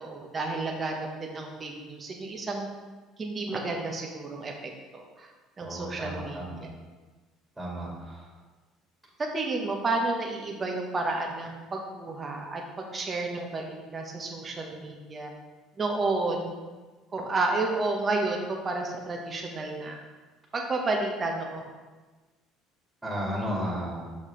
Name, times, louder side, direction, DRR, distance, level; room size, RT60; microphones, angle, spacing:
voice 1, 0.0-2.7 3.2-5.3 5.6-6.7 9.2-15.3 15.8-16.6 17.1-20.0 20.5-21.7, right 3 dB, 30° right, 1 dB, 1.1 m, -31 dB
voice 2, 5.6-6.6 7.6-8.3 23.0-24.1, equal, 10° right, -4 dB, 2.1 m, -33 dB
6.3 x 5.8 x 3.2 m, 1.3 s
hypercardioid pair, 70°, 0 cm